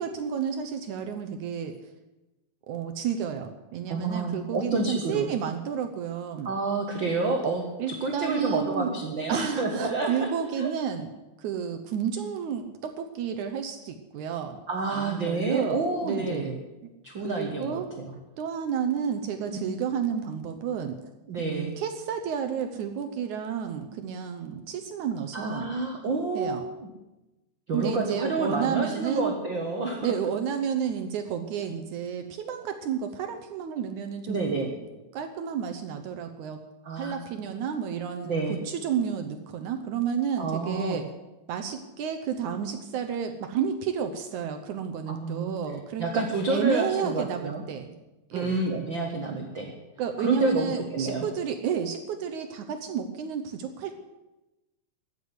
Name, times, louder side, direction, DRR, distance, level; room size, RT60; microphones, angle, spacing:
voice 1, 0.0-1.8 2.7-6.5 7.8-8.9 9.3-11.1 11.4-14.6 14.9-16.5 16.8-16.9 17.2-17.9 18.4-21.0 21.4-25.8 26.3-26.6 27.7-29.3 30.0-34.7 35.1-36.6 37.0-41.1 41.5-47.9 48.3-48.5 50.0-54.0, right 7 dB, 70° right, 6 dB, 1.9 m, -31 dB
voice 2, 3.9-5.3 6.4-10.3 10.6-10.7 14.7-16.5 17.0-18.1 19.5-19.6 21.3-21.7 25.3-26.9 27.7-30.1 34.3-34.7 36.8-37.2 38.2-38.6 40.4-41.0 45.1-45.6 46.0-47.6 48.3-49.7 50.2-51.3, right 3 dB, 55° right, 2 dB, 1.3 m, -29 dB
14.5 x 8.1 x 9.7 m, 1.0 s
omnidirectional pair, 4.4 m